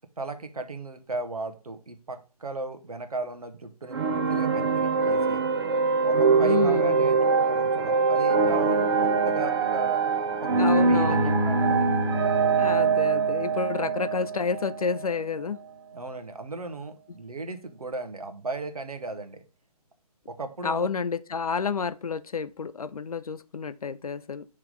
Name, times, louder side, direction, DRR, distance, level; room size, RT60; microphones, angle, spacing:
voice 1, 0.2-5.4 6.0-10.0 10.4-11.9 15.9-19.4 20.3-20.9, right 3 dB, 65° right, 1.0 m, -36 dB
sound 1, 3.9-15.2, right 4 dB, 40° right, 0.6 m, -23 dB
voice 2, 6.4-7.0 10.6-11.4 12.6-15.6 20.6-24.5, left 5 dB, 65° left, 0.4 m, -30 dB
5.9 x 3.2 x 5.1 m
figure-of-eight pair, 140°, 20 cm